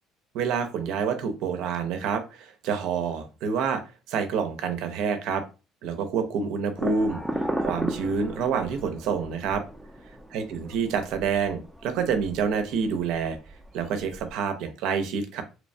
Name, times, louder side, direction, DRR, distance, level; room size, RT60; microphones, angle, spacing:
voice 1, 0.3-3.8 4.1-5.4 5.8-9.6 10.3-13.4 13.7-15.4, right 6 dB, 75° right, 7 dB, 0.5 m, -28 dB
sound 1, 6.8-14.3, right 1 dB, ahead, 0.5 m, -36 dB
2.9 x 2.1 x 2.6 m, 0.31 s
cardioid pair, 110°, 0 cm